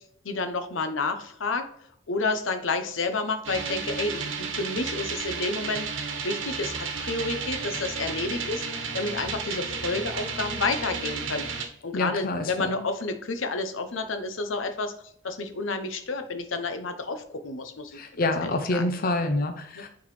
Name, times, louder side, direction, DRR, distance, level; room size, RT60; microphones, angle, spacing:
voice 1, 0.2-1.6 2.1-5.9 6.2-11.4 11.8-14.9 15.2-18.0 18.4-19.2 19.8-19.9, left 3 dB, 85° left, 8 dB, 0.8 m, -30 dB
sound 1, 3.4-11.6, right 5 dB, 80° right, 1.1 m, -32 dB
voice 2, 11.9-12.9 17.9-19.9, left 2 dB, 50° left, 6 dB, 0.7 m, -27 dB
9.6 x 3.8 x 3.3 m, 0.71 s
head